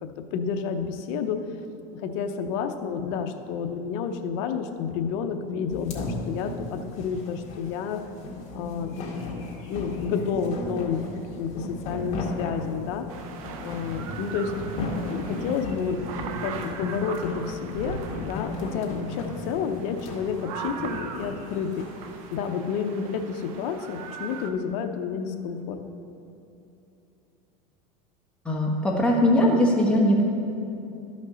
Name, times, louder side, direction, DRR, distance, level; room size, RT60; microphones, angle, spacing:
voice 1, 0.0-1.4 1.9-8.0 8.5-13.1 13.6-14.5 15.1-16.0 16.4-21.9 22.3-25.8, left 6 dB, 65° left, 6 dB, 0.7 m, -30 dB
sound 1, 5.7-22.0, left 2 dB, 40° left, 1.8 m, -35 dB
sound 2, 13.1-24.5, right 6 dB, 85° right, 0.7 m, -39 dB
voice 2, 28.4-30.2, left 1 dB, 5° left, -3 dB, 1.3 m, -20 dB
13.0 x 5.3 x 3.9 m, 2.8 s
supercardioid pair, 140°, 17 cm